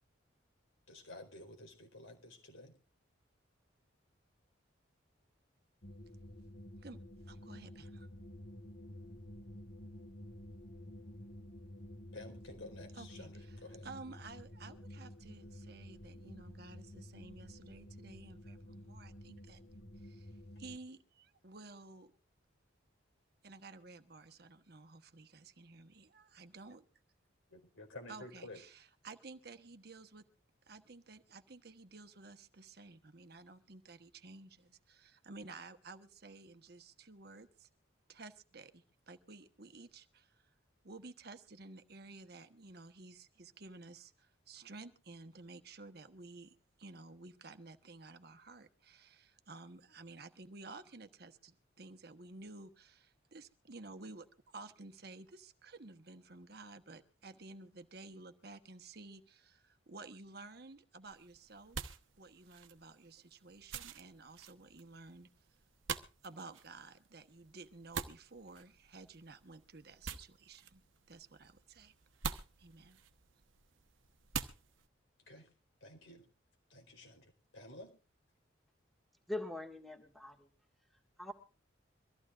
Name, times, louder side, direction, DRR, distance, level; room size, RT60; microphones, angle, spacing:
voice 1, 0.9-2.7 12.1-13.9 27.5-28.6 75.3-75.5 75.8-76.2 76.7-77.9, left 2 dB, 85° left, 4 dB, 4.4 m, -52 dB
sound 1, 5.8-20.8, left 1 dB, 55° left, 1.3 m, -51 dB
voice 2, 7.3-8.1 12.9-19.6 20.0-22.1 23.4-26.9 28.1-30.3 30.7-37.7 38.1-40.5 40.8-61.9 62.2-65.3 66.2-70.8 71.1-71.9 72.6-73.0, right 3 dB, 50° right, 8 dB, 1.1 m, -53 dB
sound 2, 61.0-74.9, right 6 dB, 75° right, 1.0 m, -47 dB
voice 3, 79.3-80.5 81.2-81.3, left 1 dB, ahead, 2 dB, 1.9 m, -42 dB
24.0 x 14.5 x 2.5 m, 0.32 s
head